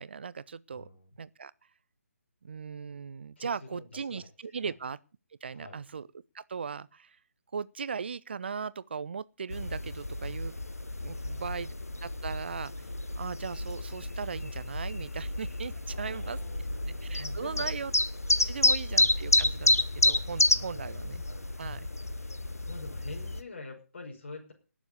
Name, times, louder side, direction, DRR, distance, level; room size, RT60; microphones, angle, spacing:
voice 1, 0.0-0.9 1.2-1.5 2.4-5.0 5.4-7.2 7.5-10.5 11.0-11.7 12.0-12.9 13.2-16.4 17.0-17.9 18.4-21.2 21.6-21.9, right 6 dB, 45° right, 0.6 m, -38 dB
voice 2, 0.7-1.2 3.4-4.3 4.6-4.7 5.5-5.8 11.1-11.7 15.9-17.8 18.5-18.8 20.5-20.9 21.2-21.6 22.7-24.5, left 2 dB, 45° left, 5.7 m, -46 dB
sound 1, 9.5-23.4, left 2 dB, 75° left, 1.1 m, -30 dB
19.0 x 7.2 x 6.9 m
figure-of-eight pair, 145°, 8 cm